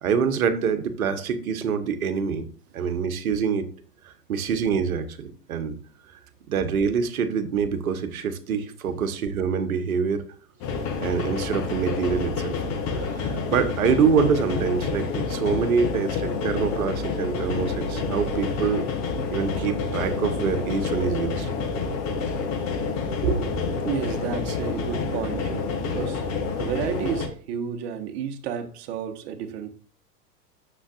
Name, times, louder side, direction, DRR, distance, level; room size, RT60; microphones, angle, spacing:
voice 1, 0.0-2.5 2.7-3.7 4.0-5.8 6.5-10.2 11.0-12.6 13.0-18.8 19.3-21.5 23.2-23.5, right 6 dB, 60° right, 1.2 m, -25 dB
sound 1, 10.6-27.3, left 4 dB, 35° left, 1.4 m, -28 dB
voice 2, 23.8-26.2 26.6-29.7, right 7 dB, 40° right, 1.3 m, -31 dB
9.8 x 6.7 x 2.5 m
figure-of-eight pair, 100°, 47 cm